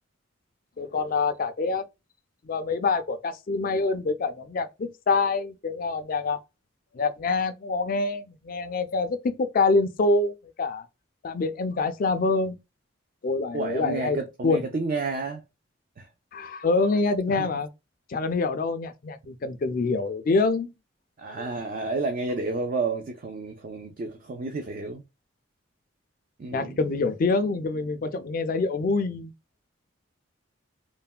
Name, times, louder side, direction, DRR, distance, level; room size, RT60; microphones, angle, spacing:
voice 1, 0.8-1.9 2.4-6.4 6.9-10.9 11.2-12.6 13.2-14.2 14.4-14.6 16.3-17.7 18.1-20.7 21.4-21.5 26.5-29.3, left 3 dB, 45° left, 0.4 m, -26 dB
voice 2, 13.5-15.4 16.0-16.1 17.3-17.5 21.2-25.0 26.4-26.8, right 3 dB, 45° right, 0.4 m, -31 dB
3.3 x 2.1 x 2.2 m
head